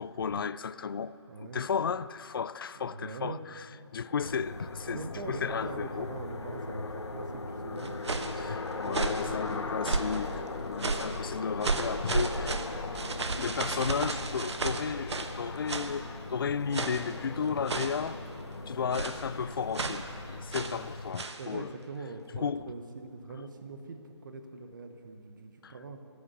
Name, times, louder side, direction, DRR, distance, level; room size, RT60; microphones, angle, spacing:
voice 1, 0.0-1.2 1.5-3.7 3.9-6.1 8.4-12.6 13.3-18.2 18.7-21.7 22.3-22.7 25.6-25.7, left 6 dB, 50° left, 0.4 m, -34 dB
voice 2, 1.3-1.6 2.8-3.4 4.8-9.4 20.5-20.9 21.4-26.0, right 3 dB, 45° right, 1.0 m, -43 dB
sound 1, 4.2-21.1, left 3 dB, 65° left, 1.1 m, -39 dB
sound 2, 7.8-8.4 8.9-9.3 9.8-10.2 10.8-11.2 11.6-15.4 15.7-16.0 16.7-17.1 17.7-18.1 18.9-19.3 19.7-20.1 20.5-20.8 21.1-21.4, right 3 dB, 70° right, 1.2 m, -33 dB
14.0 x 8.5 x 9.8 m
figure-of-eight pair, 160°, 15 cm